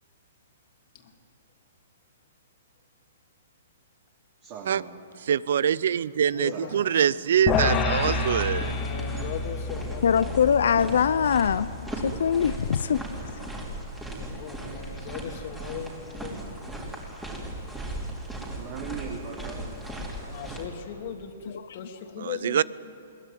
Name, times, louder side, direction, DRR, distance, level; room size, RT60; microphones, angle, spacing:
voice 1, 4.4-4.9 6.5-7.5 18.5-19.7, right 5 dB, 30° right, -2 dB, 3.2 m, -40 dB
voice 2, 5.2-8.7 22.4-22.6, right 9 dB, 65° right, 21 dB, 0.5 m, -24 dB
voice 3, 6.3-6.9 8.8-10.9 12.6-12.9 13.2-13.5 14.3-16.8 20.2-22.6, left 7 dB, 45° left, 4 dB, 2.6 m, -39 dB
sound 1, 7.5-13.8, left 4 dB, 20° left, 1.9 m, -30 dB
sound 2, 7.9-20.7, right 1 dB, 5° right, 3.4 m, -37 dB
voice 4, 10.0-11.7 12.0-13.0, left 7 dB, 75° left, 14 dB, 0.5 m, -22 dB
22.0 x 20.0 x 9.3 m, 2.5 s
hypercardioid pair, 155°, 0 cm